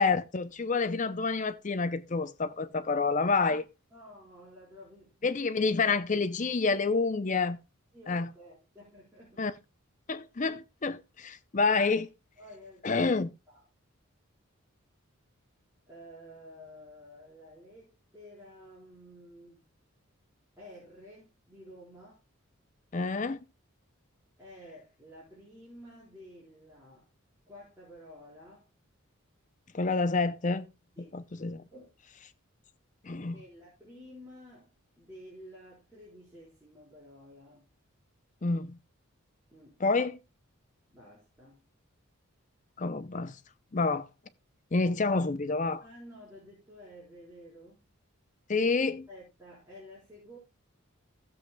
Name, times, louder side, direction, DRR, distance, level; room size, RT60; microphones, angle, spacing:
voice 1, 0.0-3.6 5.2-7.6 8.1-8.3 9.4-9.5 10.1-12.1 12.8-13.3 22.9-23.4 29.7-30.7 31.0-31.7 33.0-33.4 38.4-38.8 39.8-40.2 42.8-43.4 43.7-44.1 44.7-45.8 48.5-49.0, left 4 dB, 35° left, 0.6 m, -28 dB
voice 2, 3.9-5.4 7.9-9.6 12.4-13.1 13.5-13.6 15.9-19.7 20.6-22.2 24.4-27.1 27.4-28.7 31.0-31.1 31.7-31.9 33.3-37.7 39.5-39.8 40.9-41.6 45.8-47.8 49.1-50.4, equal, 10° right, 4.3 m, -51 dB
15.5 x 7.8 x 2.3 m
head